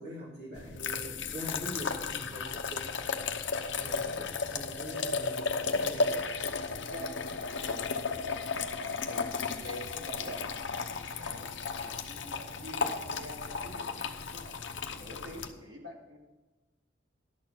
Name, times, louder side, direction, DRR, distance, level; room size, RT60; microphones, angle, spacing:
voice 1, 0.0-2.8 3.7-5.4 5.8-6.1, equal, 50° right, -12 dB, 4.0 m, -43 dB
sound 1, 0.5-15.5, left 4 dB, 75° left, 0.8 m, -34 dB
voice 2, 4.5-5.9 6.7-9.2 9.5-14.5 14.9-16.2, equal, 70° right, -1 dB, 2.5 m, -47 dB
11.5 x 6.7 x 5.9 m, 1.2 s
head